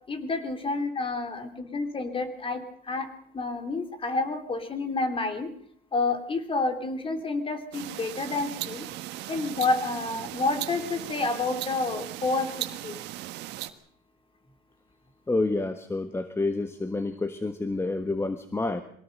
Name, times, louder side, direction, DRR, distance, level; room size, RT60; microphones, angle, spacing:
voice 1, 0.1-3.1 3.3-5.5 5.9-8.9 9.3-13.0, left 3 dB, 30° left, 8 dB, 3.4 m, -29 dB
sound 1, 7.7-13.7, right 15 dB, 90° right, 1.4 m, -37 dB
voice 2, 15.3-18.8, left 2 dB, 15° left, 9 dB, 1.4 m, -28 dB
23.5 x 18.0 x 6.7 m, 0.63 s
cardioid pair, 110°, 17 cm